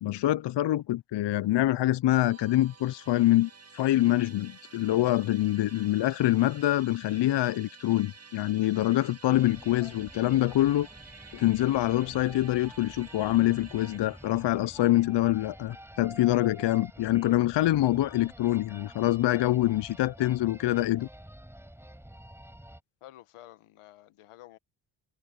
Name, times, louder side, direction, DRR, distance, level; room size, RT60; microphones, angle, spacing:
voice 1, 0.0-10.9 11.3-21.1, left 15 dB, 60° left, 0.6 m, -25 dB
Musical instrument, 2.1-17.3, right 4 dB, 30° right, 2.0 m, -52 dB
sound 1, 9.3-22.8, right 1 dB, 5° right, 4.8 m, -49 dB
voice 2, 23.0-24.6, left 14 dB, 90° left, 1.6 m, -51 dB
supercardioid pair, 55°, 49 cm